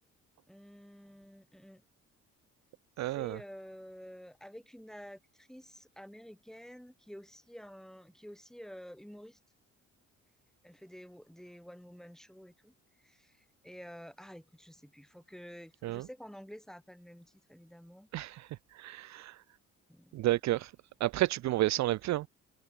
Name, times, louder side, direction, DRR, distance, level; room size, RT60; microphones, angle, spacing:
voice 1, 0.5-1.8 3.1-9.4 10.6-12.7 13.0-18.1 19.9-20.1, equal, ahead, 6.7 m, -50 dB
voice 2, 3.0-3.4 15.8-16.1 18.1-18.5 18.7-19.4 20.1-20.7 21.0-22.3, right 16 dB, 65° right, 0.5 m, -31 dB
open air
cardioid pair, 90°, 30 cm